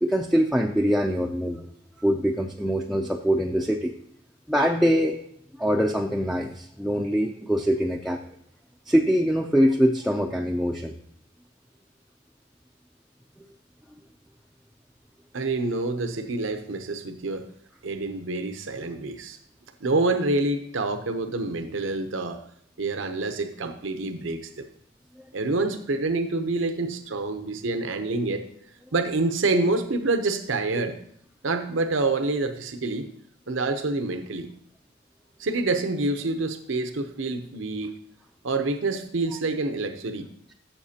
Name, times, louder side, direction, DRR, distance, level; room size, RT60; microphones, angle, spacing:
voice 1, 0.0-1.7 2.0-3.9 4.5-5.2 5.6-8.2 8.9-10.9, equal, ahead, -1 dB, 0.4 m, -23 dB
voice 2, 15.3-17.5 17.8-19.4 19.8-22.4 22.8-24.7 25.3-28.4 28.9-31.0 31.4-33.1 33.5-34.5 35.4-37.9 38.4-40.3, right 3 dB, 80° right, 8 dB, 0.7 m, -27 dB
13.5 x 7.3 x 2.8 m, 0.68 s
head